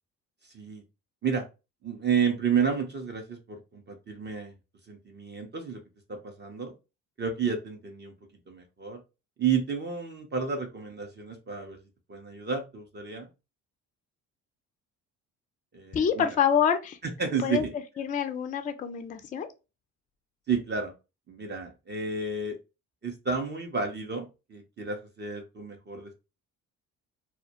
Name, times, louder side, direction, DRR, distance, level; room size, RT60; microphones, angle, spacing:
voice 1, 1.8-4.5 4.9-5.8 6.1-6.7 7.2-8.1 8.5-9.0 9.4-11.8 12.1-13.3 15.7-16.3 17.0-17.7 20.5-20.9 21.3-22.6 23.0-26.1, right 6 dB, 30° right, 0.6 m, -31 dB
voice 2, 15.9-17.0 17.4-17.6 18.0-19.5, left 8 dB, 20° left, 0.3 m, -26 dB
2.2 x 2.1 x 2.7 m
hypercardioid pair, 60°, 39 cm